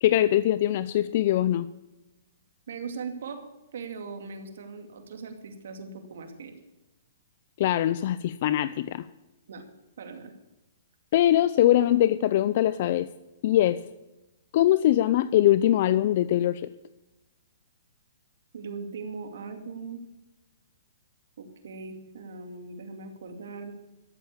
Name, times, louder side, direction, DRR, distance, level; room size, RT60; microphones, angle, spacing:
voice 1, 0.0-1.7 7.6-9.1 11.1-13.1 13.4-13.8 14.5-16.6, left 13 dB, 45° left, 15 dB, 0.5 m, -22 dB
voice 2, 2.7-3.4 3.7-6.6 9.5-9.6 10.0-10.3 18.5-20.0 21.4-23.7, right 4 dB, 70° right, 5 dB, 2.5 m, -39 dB
13.0 x 7.7 x 8.6 m, 1.0 s
hypercardioid pair, 150°, 0 cm